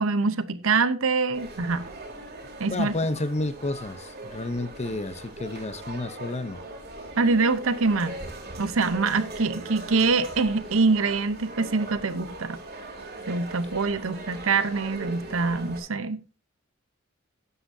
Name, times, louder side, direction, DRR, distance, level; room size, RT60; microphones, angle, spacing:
voice 1, 0.0-1.9 2.6-2.9 7.2-8.1 8.6-12.6 13.3-16.4, right 4 dB, 75° right, 0.9 m, -24 dB
sound 1, 1.3-15.8, right 2 dB, 50° right, 3.3 m, -40 dB
voice 2, 2.7-6.6, left 2 dB, 35° left, 0.8 m, -30 dB
12.5 x 9.7 x 2.7 m
head